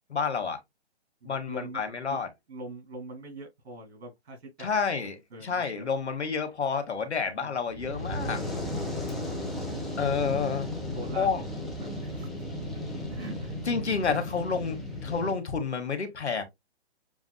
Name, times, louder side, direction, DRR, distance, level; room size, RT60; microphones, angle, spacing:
voice 1, 0.1-0.6 1.2-2.3 4.6-5.1 5.4-8.4 10.0-10.7 11.1-11.4 13.6-14.8 15.0-16.4, left 5 dB, 90° left, 1.5 m, -29 dB
voice 2, 1.2-1.8 2.1-2.2 2.5-4.8 5.3-5.6 7.2-7.6 10.9-11.3 11.8-12.3 13.1-13.6, right 1 dB, 65° right, 2.9 m, -43 dB
Fire, 7.7-15.3, left 1 dB, ahead, 0.9 m, -35 dB
7.0 x 2.5 x 2.2 m
hypercardioid pair, 145°, 33 cm